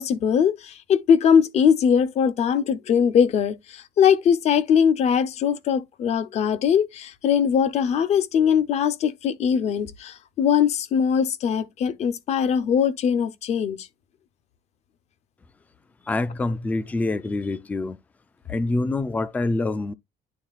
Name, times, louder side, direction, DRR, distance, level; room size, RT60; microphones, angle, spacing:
voice 1, 0.0-13.8, left 7 dB, 40° left, 0.7 m, -21 dB
voice 2, 16.1-18.0 18.5-19.9, left 2 dB, 10° left, 0.3 m, -26 dB
11.5 x 3.8 x 2.4 m
cardioid pair, 175°, 17 cm